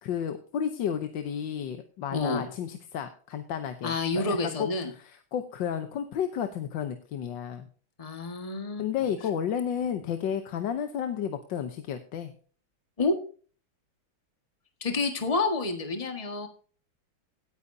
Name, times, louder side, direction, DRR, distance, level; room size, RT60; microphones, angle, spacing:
voice 1, 0.0-4.7 4.9-7.7 8.8-12.3, left 8 dB, 65° left, 7 dB, 1.5 m, -32 dB
voice 2, 2.1-2.5 3.8-4.9 8.0-8.8 13.0-13.2 14.8-16.5, left 3 dB, 20° left, 4 dB, 1.6 m, -28 dB
17.5 x 9.1 x 2.7 m, 0.40 s
omnidirectional pair, 2.3 m